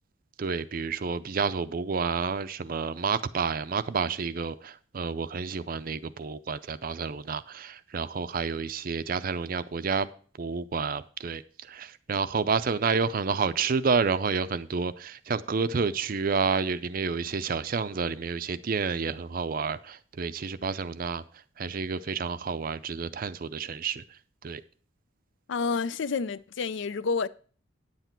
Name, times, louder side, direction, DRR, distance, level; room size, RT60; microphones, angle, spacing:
voice 1, 0.4-10.1 10.4-21.2 21.6-24.0 24.4-24.6, right 5 dB, 45° right, 0.5 m, -29 dB
voice 2, 25.5-27.3, left 5 dB, 65° left, 0.4 m, -29 dB
9.9 x 8.1 x 4.4 m
head